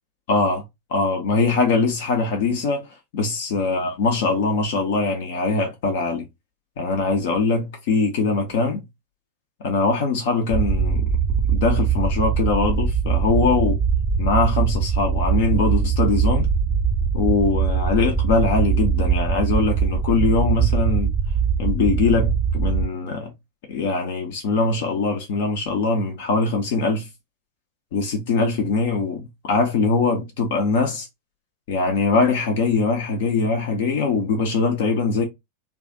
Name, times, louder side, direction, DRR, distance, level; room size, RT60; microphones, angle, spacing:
voice 1, 0.3-0.6 0.9-6.3 6.8-8.8 9.6-11.1 11.5-13.8 14.2-16.5 17.1-21.1 21.6-23.3 23.7-27.1 27.9-31.1 31.7-35.2, left 4 dB, 50° left, 0.8 m, -22 dB
sound 1, 10.5-22.9, right 6 dB, 5° right, 0.6 m, -21 dB
3.2 x 2.4 x 4.0 m
figure-of-eight pair, 90°, 0 cm